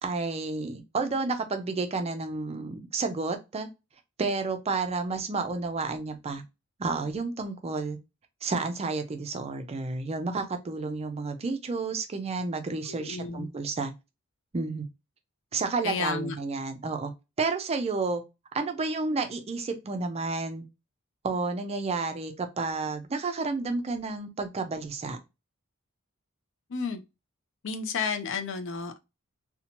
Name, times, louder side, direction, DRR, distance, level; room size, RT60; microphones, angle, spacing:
voice 1, 0.0-3.7 4.2-6.4 6.8-8.0 8.4-13.9 14.5-14.9 15.5-17.1 17.4-18.2 18.5-20.6 21.2-25.2, right 3 dB, 30° right, 0.4 m, -31 dB
voice 2, 12.9-13.5 15.8-16.4 26.7-27.0 27.6-29.0, left 5 dB, 60° left, 0.4 m, -32 dB
2.7 x 2.1 x 2.8 m
head